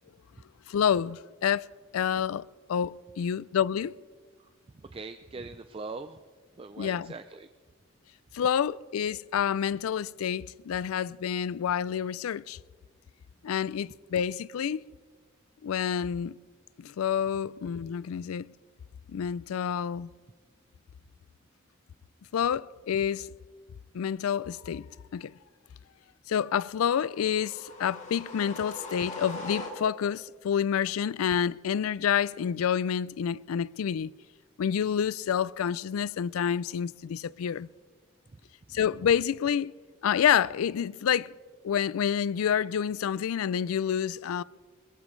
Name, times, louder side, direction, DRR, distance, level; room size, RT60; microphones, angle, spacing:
voice 1, 0.7-1.6 1.9-3.9 6.8-7.1 8.3-12.6 13.4-14.8 15.6-16.4 16.8-18.5 19.1-20.1 22.3-23.3 23.9-24.9 25.1-25.3 26.3-34.1 34.6-37.7 38.7-39.7 40.0-41.3 41.6-44.4, left 8 dB, 90° left, 0.4 m, -28 dB
voice 2, 4.9-6.2 6.6-7.5, right 3 dB, 25° right, 0.4 m, -41 dB
sound 1, 27.0-30.2, left 2 dB, 35° left, 2.5 m, -41 dB
22.0 x 21.0 x 3.2 m
head